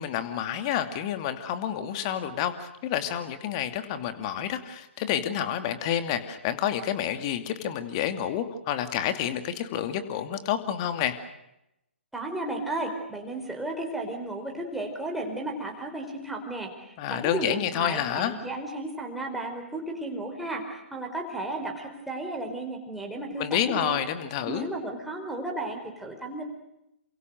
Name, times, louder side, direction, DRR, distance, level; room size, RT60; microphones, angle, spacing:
voice 1, 0.0-11.2 17.0-18.4 23.4-24.7, left 10 dB, 30° left, 9 dB, 2.7 m, -29 dB
voice 2, 12.1-24.0 24.5-26.5, right 2 dB, ahead, 1 dB, 4.8 m, -34 dB
29.5 x 27.0 x 6.6 m, 0.85 s
figure-of-eight pair, 130°, 7 cm